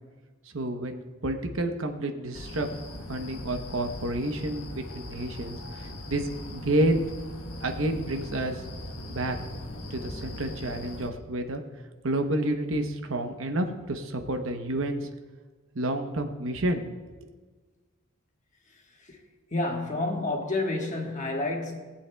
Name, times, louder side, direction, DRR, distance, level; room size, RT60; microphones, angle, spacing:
voice 1, 0.5-2.7 3.1-7.0 7.6-8.6 9.1-9.4 9.9-11.6 12.0-15.1 15.7-16.9 17.2-17.3, right 1 dB, 70° right, 0.9 m, -29 dB
sound 1, 2.3-11.1, left 1 dB, 85° left, 1.3 m, -40 dB
voice 2, 19.5-21.8, left 2 dB, 35° left, 1.4 m, -29 dB
18.5 x 8.5 x 2.3 m
head